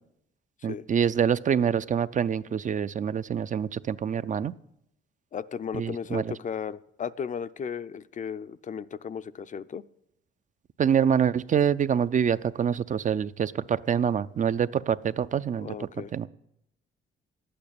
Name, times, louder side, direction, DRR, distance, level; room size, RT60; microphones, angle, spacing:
voice 1, 0.6-4.5 5.7-6.3 10.8-16.3, right 8 dB, 40° right, 15 dB, 0.5 m, -26 dB
voice 2, 5.3-9.8 15.6-16.1, left 7 dB, 40° left, 15 dB, 0.5 m, -35 dB
11.5 x 8.7 x 8.5 m, 0.80 s
cardioid pair, 90°, 20 cm